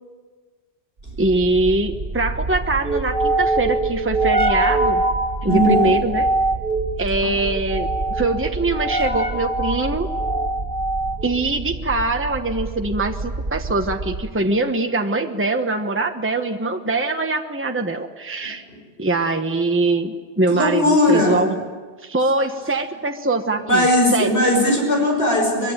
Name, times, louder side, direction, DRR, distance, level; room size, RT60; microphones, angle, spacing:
sound 1, 1.1-14.4, right 2 dB, 50° right, 1.9 m, -24 dB
voice 1, 1.2-5.0 5.4-6.3 7.0-10.1 11.2-18.6 19.0-21.6 22.0-23.8 24.1-24.3, right 2 dB, 10° right, 5 dB, 1.2 m, -22 dB
voice 2, 5.5-5.9 7.2-7.3 20.5-21.4 23.7-25.7, left 1 dB, 65° left, 0 dB, 6.3 m, -18 dB
24.0 x 23.0 x 8.9 m, 1.5 s
omnidirectional pair, 1.1 m